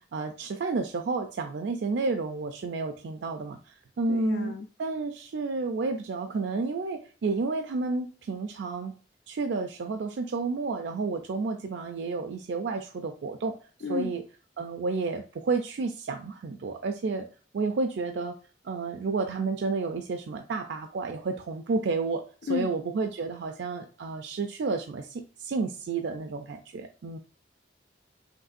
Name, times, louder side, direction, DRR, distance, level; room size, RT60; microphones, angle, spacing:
voice 1, 0.0-8.9 9.3-14.2 14.6-17.3 17.5-18.4 18.6-27.2, right 4 dB, 70° right, 6 dB, 0.4 m, -31 dB
voice 2, 4.1-4.7 13.8-14.1 22.5-22.7, left 5 dB, 65° left, 5 dB, 0.3 m, -31 dB
5.2 x 3.1 x 2.5 m, 0.38 s
head